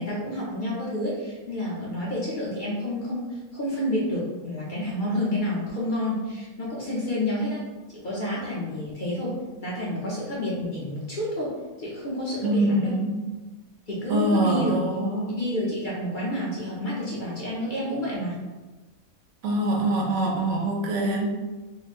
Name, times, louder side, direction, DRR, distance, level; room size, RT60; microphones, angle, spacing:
voice 1, 0.0-3.2 3.5-7.6 8.0-9.3 9.6-11.5 11.8-12.9 13.9-14.7 15.4-18.3, left 1 dB, 45° left, -6 dB, 0.7 m, -29 dB
voice 2, 12.4-13.2 14.1-15.4 19.4-21.3, right 1 dB, 70° right, 0 dB, 0.9 m, -24 dB
3.1 x 2.1 x 4.2 m, 1.2 s
omnidirectional pair, 1.5 m